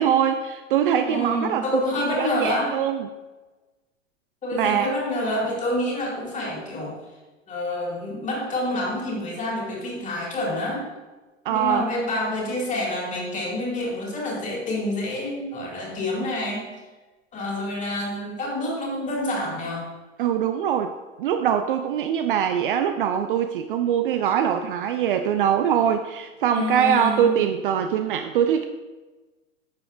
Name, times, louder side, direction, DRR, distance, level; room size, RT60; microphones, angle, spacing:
voice 1, 0.0-1.8 2.2-3.1 4.5-4.9 11.5-11.9 20.2-20.9 21.2-28.6, right 9 dB, 45° right, 7 dB, 0.5 m, -23 dB
voice 2, 1.0-2.8 4.4-7.0 7.5-10.9 11.5-16.7 17.3-19.9 26.5-27.3, left 1 dB, 20° left, -2 dB, 2.3 m, -27 dB
10.0 x 6.9 x 2.5 m, 1.2 s
figure-of-eight pair, 100°, 39 cm